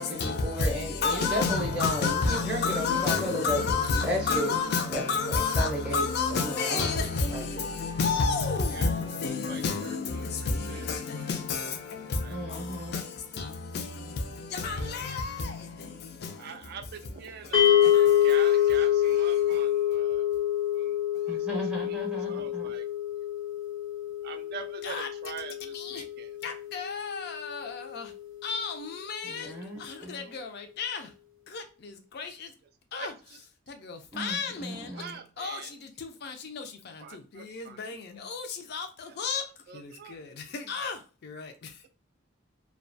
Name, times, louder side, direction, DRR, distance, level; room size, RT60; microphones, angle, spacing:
voice 1, 0.0-3.6 4.0-4.6 4.9-7.0 7.3-7.4 12.3-13.0 21.3-22.7 29.2-30.3 34.1-35.2, equal, 5° right, 0.5 m, -34 dB
voice 2, 1.0-7.2 7.8-9.0 9.2-9.8 14.6-14.7 28.5-28.7 30.8-30.9 34.2-34.5 35.4-35.5 39.2-39.4 40.8-40.9, left 4 dB, 55° left, 0.4 m, -27 dB
voice 3, 8.7-10.3 10.7-11.3 11.6-11.7 12.2-12.4 14.6-15.1 16.4-20.3 20.7-20.9 21.3-22.0 22.3-22.9 24.2-26.4 29.3-29.7 30.0-30.3 32.9-33.4 34.9-35.7 37.0-37.8 39.0-39.2 39.7-40.2, right 7 dB, 50° right, 0.3 m, -45 dB
sound 1, 17.5-27.8, left 11 dB, 90° left, 0.7 m, -26 dB
2.3 x 2.2 x 2.5 m
head